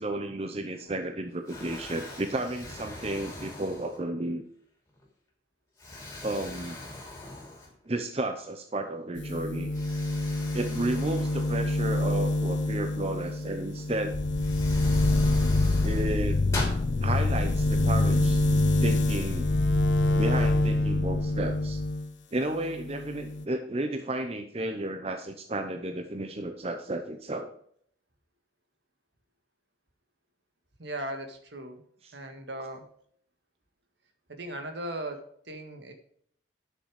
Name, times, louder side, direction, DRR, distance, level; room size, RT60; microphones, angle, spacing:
voice 1, 0.0-4.4 6.2-6.8 7.9-9.7 10.5-14.1 15.8-16.4 17.0-18.4 18.8-19.5 20.2-21.8 22.3-27.5 32.0-32.1, right 1 dB, 30° right, 6 dB, 0.7 m, -32 dB
Explosion, 0.8-1.1 1.5-4.3 4.9-5.1 5.8-8.0 8.4-8.5 9.7-12.4 13.8-13.9 14.3-16.8, left 2 dB, 15° left, 2.8 m, -41 dB
sound 1, 9.2-22.1 22.4-23.5, left 1 dB, 85° left, 0.9 m, -28 dB
sound 2, 14.1-22.0, left 3 dB, 45° left, 0.5 m, -28 dB
voice 2, 30.8-31.8 32.1-32.9 34.3-35.9, right 1 dB, 70° right, 6 dB, 1.7 m, -38 dB
11.0 x 6.5 x 5.0 m, 0.64 s
head